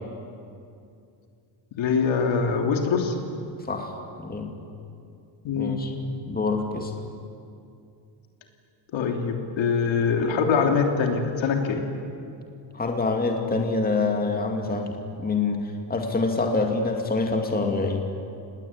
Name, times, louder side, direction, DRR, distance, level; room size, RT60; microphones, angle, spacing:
voice 1, 1.8-3.1 5.4-5.8 8.9-11.8, left 5 dB, 80° left, 3 dB, 3.3 m, -23 dB
voice 2, 3.7-4.5 5.6-5.9 6.2-6.9 12.7-18.1, left 3 dB, 20° left, 2 dB, 2.4 m, -26 dB
29.0 x 20.0 x 8.8 m, 2.5 s
cardioid pair, 150°, 46 cm